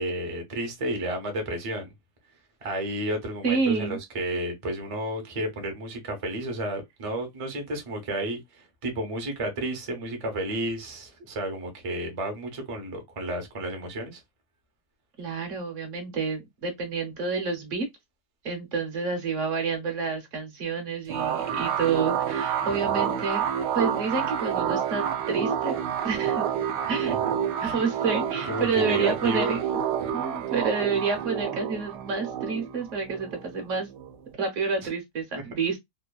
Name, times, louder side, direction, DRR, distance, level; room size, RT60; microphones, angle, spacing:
voice 1, 0.0-1.9 2.6-14.2 22.8-23.0 27.1-27.2 27.6-27.7 28.5-29.6 30.0-30.2, right 1 dB, 40° right, 0.4 m, -32 dB
voice 2, 3.4-4.0 15.2-17.9 18.4-23.5 23.7-25.8 26.0-26.5 26.9-27.1 27.6-29.6 30.1-33.9 34.4-35.8, right 5 dB, 55° right, 1.0 m, -29 dB
sound 1, 21.1-34.3, right 8 dB, 90° right, 1.2 m, -29 dB
3.0 x 2.2 x 2.2 m
omnidirectional pair, 1.8 m